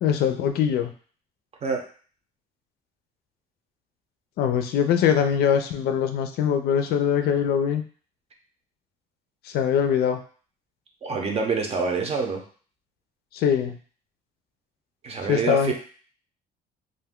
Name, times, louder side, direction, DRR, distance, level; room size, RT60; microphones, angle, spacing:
voice 1, 0.0-0.9 4.4-7.8 9.5-10.2 13.3-13.8 15.3-15.7, left 8 dB, 70° left, 8 dB, 0.4 m, -22 dB
voice 2, 11.0-12.4 15.0-15.7, right 5 dB, 35° right, 3 dB, 0.6 m, -26 dB
2.5 x 2.2 x 3.5 m, 0.43 s
cardioid pair, 110°, 17 cm